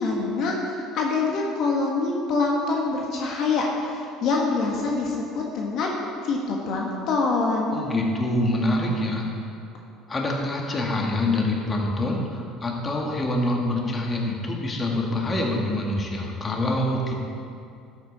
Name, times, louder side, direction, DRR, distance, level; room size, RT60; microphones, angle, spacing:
voice 1, 0.0-5.9 6.2-7.9, left 3 dB, 60° left, -1 dB, 1.5 m, -25 dB
voice 2, 7.7-9.3 10.1-17.2, left 1 dB, 30° left, -1 dB, 2.0 m, -25 dB
12.0 x 8.7 x 4.2 m, 2.5 s
supercardioid pair, 85°, 0 cm